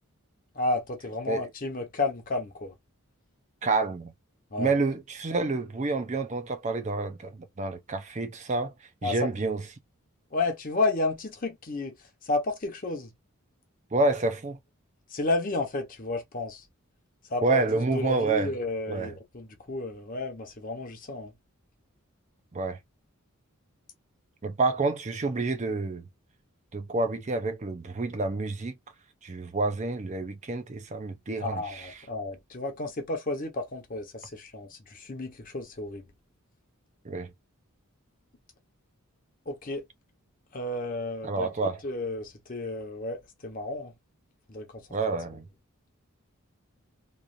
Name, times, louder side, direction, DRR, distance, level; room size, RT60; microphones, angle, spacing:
voice 1, 0.5-2.7 4.5-4.7 9.0-9.3 10.3-11.9 12.2-13.1 15.1-16.6 17.3-17.6 17.9-21.3 31.4-36.1 39.5-39.8 40.5-43.9 44.5-44.8 45.1-45.2, left 2 dB, 40° left, 0.8 m, -32 dB
voice 2, 3.6-4.1 4.6-8.7 9.0-9.6 13.9-14.6 17.4-18.5 18.9-19.1 22.5-22.8 24.4-26.0 26.7-28.7 29.2-31.9 37.0-37.3 41.2-41.8 44.9-45.4, right 3 dB, 30° right, 0.5 m, -28 dB
3.1 x 2.4 x 2.5 m
head